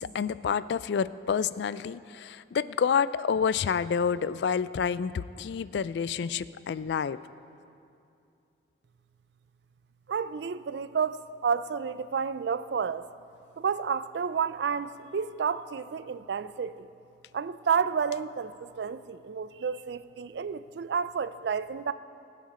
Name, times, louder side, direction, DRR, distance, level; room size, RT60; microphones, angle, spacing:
voice 1, 0.0-7.2, left 6 dB, 70° left, 16 dB, 0.3 m, -28 dB
voice 2, 10.1-13.1 13.6-16.9 17.3-21.9, right 6 dB, 70° right, 14 dB, 0.4 m, -30 dB
22.0 x 7.6 x 4.2 m, 2.6 s
head